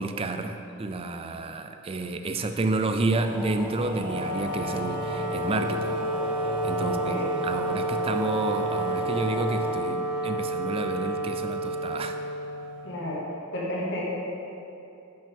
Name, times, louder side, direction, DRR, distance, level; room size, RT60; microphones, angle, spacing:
voice 1, 0.0-6.0 6.6-7.2 7.4-12.3, right 2 dB, 30° right, 7 dB, 0.4 m, -30 dB
sound 1, 3.1-9.8, right 1 dB, 5° right, 0.8 m, -36 dB
Wind instrument woodwind instrument, 3.7-13.0, right 1 dB, 65° right, 1.6 m, -30 dB
voice 2, 6.8-7.3 12.8-13.2 13.5-14.0, left 1 dB, 60° left, -4 dB, 1.8 m, -32 dB
11.0 x 5.5 x 3.6 m, 2.7 s
head